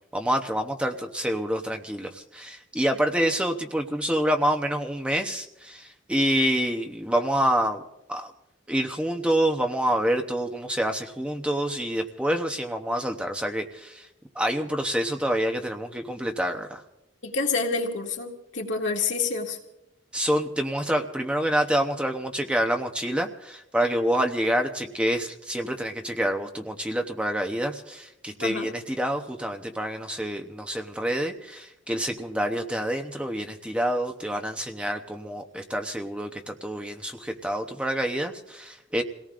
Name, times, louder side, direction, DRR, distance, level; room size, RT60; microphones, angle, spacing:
voice 1, 0.1-7.8 8.1-8.3 8.7-14.1 14.3-16.8 20.1-39.0, equal, 5° right, 4 dB, 0.8 m, -27 dB
voice 2, 17.2-19.6 28.4-28.7, left 4 dB, 70° left, 0 dB, 2.2 m, -28 dB
28.5 x 18.0 x 2.5 m, 0.87 s
head